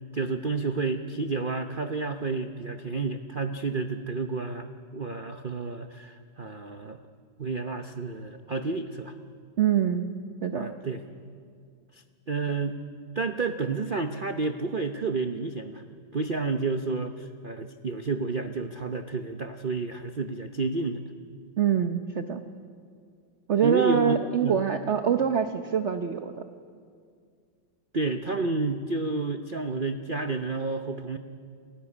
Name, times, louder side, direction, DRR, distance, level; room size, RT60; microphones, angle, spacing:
voice 1, 0.1-7.0 7.4-9.1 10.5-11.0 11.9-12.8 13.1-15.8 16.1-21.0 23.6-24.6 27.9-31.2, right 3 dB, 70° right, 7 dB, 0.4 m, -30 dB
voice 2, 9.6-10.1 10.4-10.7 21.6-22.4 23.5-26.4, right 8 dB, 50° right, 7 dB, 0.8 m, -25 dB
29.5 x 13.5 x 9.8 m, 2.2 s
omnidirectional pair, 2.2 m